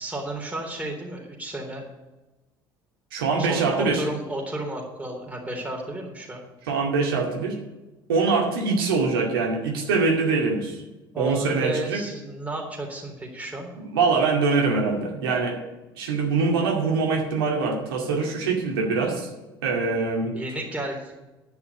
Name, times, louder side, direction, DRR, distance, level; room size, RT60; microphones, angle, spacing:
voice 1, 0.0-1.8 3.4-6.4 11.1-13.7 20.3-21.2, right 1 dB, 10° right, 0 dB, 3.7 m, -33 dB
voice 2, 3.1-4.0 6.7-7.6 8.1-10.8 11.2-12.0 13.8-15.6 16.0-19.3 19.6-20.3, right 4 dB, 75° right, 0 dB, 2.2 m, -23 dB
10.5 x 5.9 x 8.6 m, 1.1 s
figure-of-eight pair, 60°, 12 cm